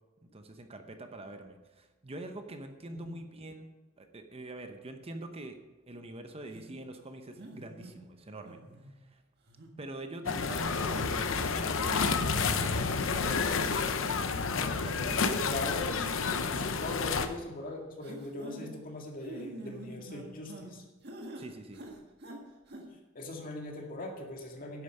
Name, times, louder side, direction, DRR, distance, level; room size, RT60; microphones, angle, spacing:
voice 1, 0.3-3.7 4.0-5.6 5.9-8.6 9.1-9.2 9.8-14.2 14.6-15.4 21.4-21.8, right 2 dB, 30° right, 6 dB, 0.8 m, -44 dB
sound 1, 6.5-6.7 7.4-7.9 8.4-8.9 9.5-9.7 10.3-10.5 11.0-11.5 12.0-12.1 12.5-12.7 13.0-13.2 13.6-13.9 14.3-14.4 15.2-15.3 16.0-16.5 17.0-17.4 18.0-18.7 19.2-20.7 21.0-21.5 21.7-22.4 22.7-22.8, right 1 dB, 50° right, 1.7 m, -46 dB
sound 2, 10.3-17.3, left 5 dB, 65° left, 0.7 m, -30 dB
voice 2, 15.2-15.9 16.5-20.8 23.1-24.8, left 2 dB, 45° left, 1 dB, 2.0 m, -40 dB
11.0 x 8.3 x 5.5 m, 1.2 s
head